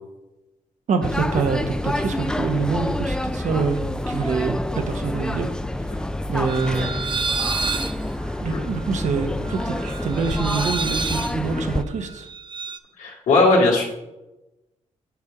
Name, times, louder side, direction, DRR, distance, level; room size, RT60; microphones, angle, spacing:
voice 1, 0.9-5.5 5.8-6.9 8.4-12.3, right 5 dB, 70° right, 6 dB, 1.0 m, -26 dB
sound 1, 1.0-11.8, left 1 dB, 5° left, 0.4 m, -28 dB
sound 2, 6.5-12.8, right 4 dB, 40° right, 0.6 m, -30 dB
voice 2, 13.0-13.8, left 2 dB, 85° left, -2 dB, 2.0 m, -17 dB
8.1 x 3.5 x 5.9 m, 0.97 s
cardioid pair, 65°, 13 cm